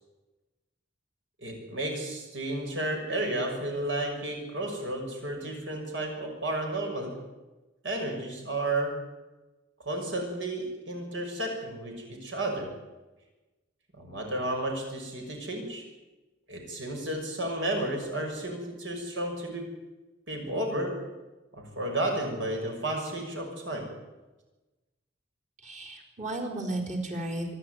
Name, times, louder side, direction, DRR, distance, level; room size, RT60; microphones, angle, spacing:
voice 1, 1.4-7.2 7.8-8.9 9.8-12.7 13.9-15.8 16.5-19.7 20.3-21.0 21.5-23.9, right 1 dB, 70° right, 2 dB, 6.3 m, -32 dB
voice 2, 25.6-27.6, right 1 dB, 40° right, 1 dB, 4.2 m, -34 dB
25.0 x 11.5 x 9.4 m, 1.1 s
head